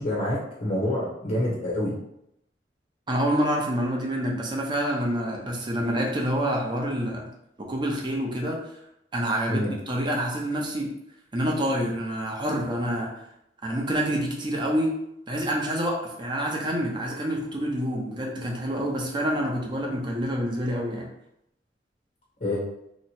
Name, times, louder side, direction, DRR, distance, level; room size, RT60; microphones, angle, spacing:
voice 1, 0.0-1.9 9.5-9.7 22.4-22.6, left 1 dB, 45° left, -5 dB, 0.8 m, -27 dB
voice 2, 3.1-7.3 7.6-8.6 9.1-10.9 11.3-13.1 13.6-14.9 15.3-21.1, equal, 25° right, -1 dB, 0.7 m, -27 dB
2.9 x 2.1 x 4.1 m, 0.79 s
head